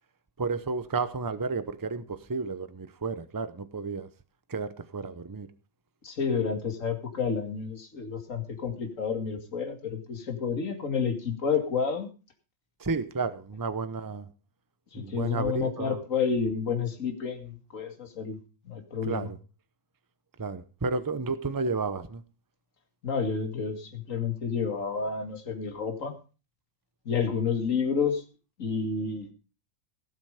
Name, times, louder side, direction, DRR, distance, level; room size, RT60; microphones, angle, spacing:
voice 1, 0.4-4.1 4.5-5.5 12.8-14.3 14.9-16.0 19.0-19.4 20.4-22.2, right 4 dB, 25° right, 13 dB, 0.4 m, -32 dB
voice 2, 6.0-12.1 14.9-18.4 18.7-19.3 23.0-26.1 27.1-28.2 28.6-29.3, left 6 dB, 45° left, 5 dB, 2.6 m, -30 dB
18.0 x 7.6 x 5.1 m, 0.34 s
omnidirectional pair, 2.0 m